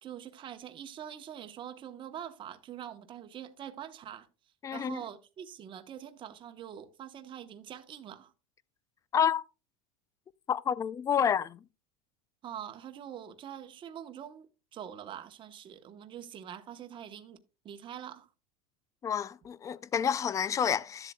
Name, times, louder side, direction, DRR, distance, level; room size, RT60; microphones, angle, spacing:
voice 1, 0.0-4.3 4.7-8.3 12.4-17.4 17.6-18.3, right 9 dB, 30° right, 1.0 m, -44 dB
voice 2, 4.6-5.0 9.1-9.4 10.5-11.6 19.0-21.1, left 8 dB, 20° left, 0.4 m, -29 dB
12.5 x 7.5 x 2.2 m
supercardioid pair, 135°, 18 cm